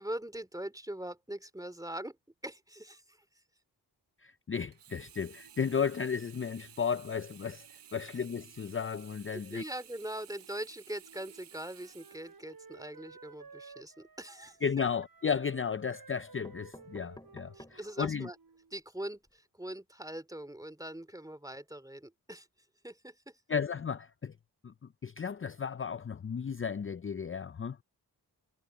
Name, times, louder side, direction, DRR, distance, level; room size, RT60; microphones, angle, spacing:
voice 1, 0.0-2.2 2.4-3.2 9.3-14.8 17.5-18.4 18.7-22.5 22.8-23.4, right 1 dB, 10° right, 2.6 m, -42 dB
voice 2, 4.2-7.7 7.9-9.6 14.6-18.3 23.5-24.3 24.6-24.7 25.0-27.8, left 6 dB, 30° left, 0.6 m, -34 dB
Sink (filling or washing), 4.7-13.0 13.5-13.6, right 10 dB, 85° right, 1.0 m, -55 dB
Wind instrument woodwind instrument, 11.0-18.8, right 4 dB, 55° right, 7.9 m, -55 dB
sound 1, 14.4-15.1 15.8-15.9 16.2-18.0 18.5-18.6 18.8-18.9 19.1-19.3, left 1 dB, 10° left, 4.5 m, -54 dB
cardioid pair, 50°, 41 cm